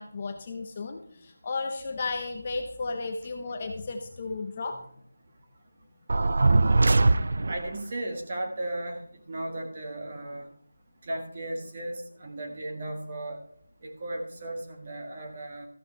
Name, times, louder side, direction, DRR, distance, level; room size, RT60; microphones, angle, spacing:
voice 1, 0.0-4.9, left 3 dB, 20° left, 4 dB, 0.7 m, -34 dB
sound 1, 6.1-7.8, right 3 dB, 40° right, 0.4 m, -21 dB
voice 2, 7.5-9.0 9.3-10.5 11.0-13.4 13.8-15.7, right 1 dB, 25° right, 2 dB, 1.6 m, -35 dB
14.0 x 11.0 x 3.2 m, 0.64 s
figure-of-eight pair, 180°, 0 cm